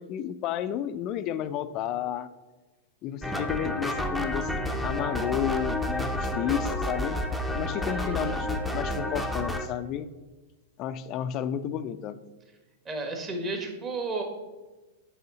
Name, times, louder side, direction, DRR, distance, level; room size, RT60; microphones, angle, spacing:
voice 1, 0.0-2.3 3.0-4.6 4.8-7.2 7.5-10.1 10.8-12.2, left 10 dB, 40° left, 12 dB, 0.5 m, -32 dB
sound 1, 3.2-9.7, left 1 dB, ahead, 0.8 m, -30 dB
voice 2, 7.9-8.4 12.8-14.2, right 3 dB, 25° right, 3 dB, 1.6 m, -33 dB
7.9 x 5.6 x 4.0 m, 1.2 s
figure-of-eight pair, 100°, 0 cm